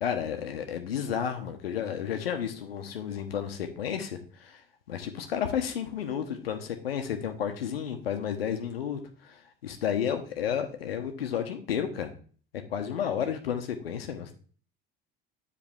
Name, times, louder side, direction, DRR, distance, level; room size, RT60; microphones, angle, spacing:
voice 1, 0.0-4.6 4.9-12.1 12.7-14.3, left 8 dB, 75° left, 7 dB, 1.2 m, -32 dB
8.9 x 5.1 x 3.6 m, 0.43 s
figure-of-eight pair, 65°, 30 cm